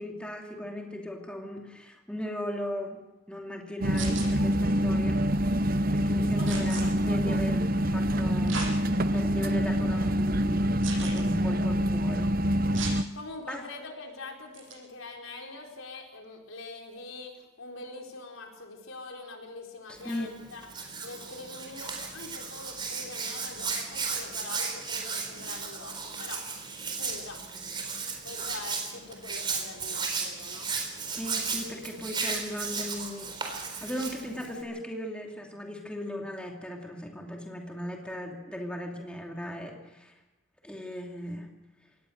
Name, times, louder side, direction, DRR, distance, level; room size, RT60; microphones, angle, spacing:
voice 1, 0.0-3.0 3.3-5.2 5.9-8.6 9.1-12.3 13.5-13.6 19.9-20.3 31.2-40.1 40.6-41.5, equal, 5° left, 0 dB, 2.8 m, -37 dB
sound 1, 3.8-13.0, equal, 45° right, 0.8 m, -26 dB
sound 2, 3.9-4.3 6.5-6.8 8.5-8.7 9.3-9.4 10.8-11.2 12.7-13.0 14.5-14.7, right 5 dB, 65° right, 7.5 m, -36 dB
voice 2, 6.4-6.9 13.1-20.6 21.0-26.5 27.0-27.4 28.2-30.7, left 3 dB, 85° left, 1 dB, 4.6 m, -44 dB
Hands, 20.0-34.6, right 5 dB, 25° right, 4.1 m, -35 dB
26.0 x 19.0 x 6.6 m, 1.1 s
head